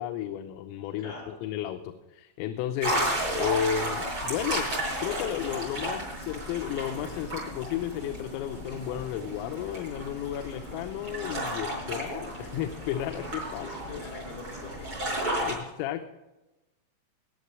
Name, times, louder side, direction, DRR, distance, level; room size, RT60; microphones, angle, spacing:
voice 1, 0.0-4.7 5.0-14.0 15.5-16.1, left 10 dB, 85° left, 7 dB, 3.3 m, -33 dB
voice 2, 1.0-1.3 13.6-15.1 15.4-15.7, left 4 dB, 65° left, -1 dB, 6.0 m, -44 dB
sound 1, 2.8-15.6, right 1 dB, 25° right, 6.0 m, -33 dB
20.5 x 7.4 x 4.8 m, 1.0 s
omnidirectional pair, 5.8 m